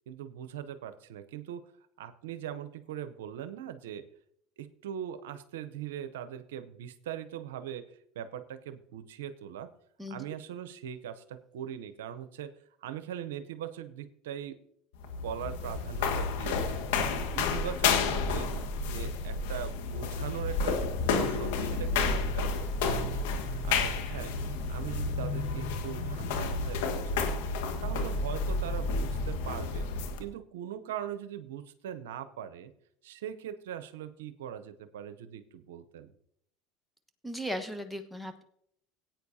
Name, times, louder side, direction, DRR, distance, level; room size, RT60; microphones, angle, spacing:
voice 1, 0.1-1.6 2.0-4.1 4.6-7.9 8.1-9.7 10.1-12.5 12.8-14.6 15.2-16.8 17.3-18.5 18.9-20.8 21.1-23.2 23.6-24.3 24.7-27.4 27.8-29.9 30.2-32.7 33.0-36.1, right 10 dB, 85° right, 11 dB, 0.6 m, -41 dB
sound 1, 14.9-30.2, left 4 dB, 80° left, 1.4 m, -31 dB
voice 2, 37.2-38.4, equal, 5° left, 7 dB, 1.2 m, -37 dB
18.0 x 9.0 x 2.7 m, 0.71 s
hypercardioid pair, 90°, 0 cm